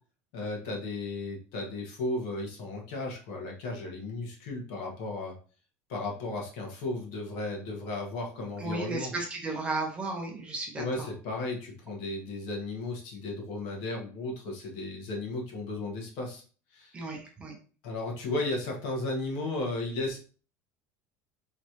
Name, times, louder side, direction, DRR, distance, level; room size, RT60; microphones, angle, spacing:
voice 1, 0.3-5.3 5.9-9.1 10.8-16.4 16.7-17.0 17.8-20.2, left 2 dB, 60° left, 0 dB, 1.4 m, -34 dB
voice 2, 8.6-11.1 16.9-17.6, right 3 dB, 15° right, 1 dB, 0.7 m, -34 dB
3.9 x 3.2 x 3.0 m, 0.39 s
cardioid pair, 175°, 7 cm